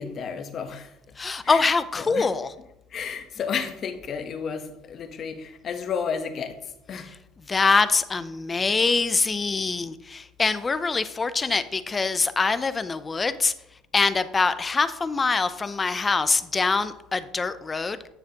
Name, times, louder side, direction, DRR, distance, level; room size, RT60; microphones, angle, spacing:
voice 1, 0.0-1.1 1.4-1.7 2.0-2.3 2.9-7.2 8.6-8.7, left 6 dB, 40° left, 1.0 m, -32 dB
voice 2, 1.2-2.5 7.5-13.5 13.9-18.1, left 4 dB, 20° left, 0.5 m, -24 dB
9.2 x 7.0 x 2.9 m
cardioid pair, 120°, 0 cm